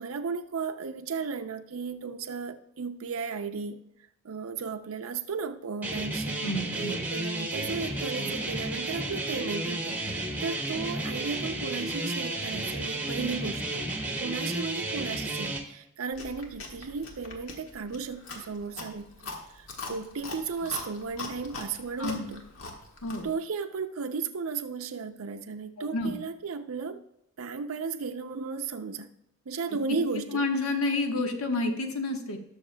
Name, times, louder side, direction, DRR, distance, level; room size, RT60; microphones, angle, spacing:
voice 1, 0.0-3.8 4.2-6.4 6.8-13.8 14.2-19.1 19.5-22.5 23.2-27.0 27.4-29.1 29.5-30.5, right 5 dB, 80° right, 5 dB, 0.5 m, -35 dB
sound 1, 5.8-15.6, right 2 dB, 10° right, 0.9 m, -32 dB
voice 2, 6.4-7.0 8.2-8.3 19.9-20.0 22.0-22.3 23.0-23.3 25.8-26.2 30.3-32.4, left 2 dB, 85° left, 4 dB, 1.2 m, -30 dB
Chewing mastication, 16.1-23.3, left 3 dB, 70° left, 1.5 m, -42 dB
19.0 x 6.4 x 2.2 m, 0.81 s
head